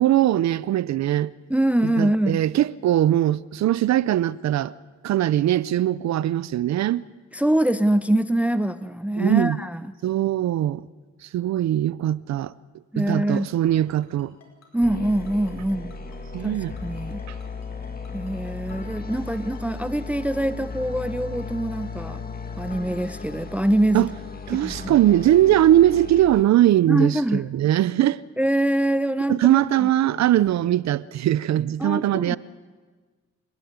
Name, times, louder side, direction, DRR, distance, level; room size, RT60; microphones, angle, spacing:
voice 1, 0.0-1.3 1.8-4.7 5.0-7.0 9.2-9.6 10.0-10.8 11.3-12.5 13.0-14.3 16.3-16.8 17.3-17.4 23.9-24.1 24.5-28.2 29.3-32.4, right 12 dB, 65° right, 0.6 m, -21 dB
voice 2, 1.5-2.4 7.3-9.9 12.9-13.5 14.7-15.9 16.4-17.2 18.1-22.2 22.6-24.1 24.6-24.9 26.9-27.5 28.4-29.4 29.8-29.9 31.8-32.4, right 1 dB, 5° right, 0.6 m, -24 dB
Ringtone, 13.3-20.0, left 6 dB, 60° left, 5.0 m, -53 dB
sound 1, 14.8-26.4, left 4 dB, 30° left, 2.3 m, -36 dB
28.5 x 10.5 x 9.5 m
cardioid pair, 90°, 30 cm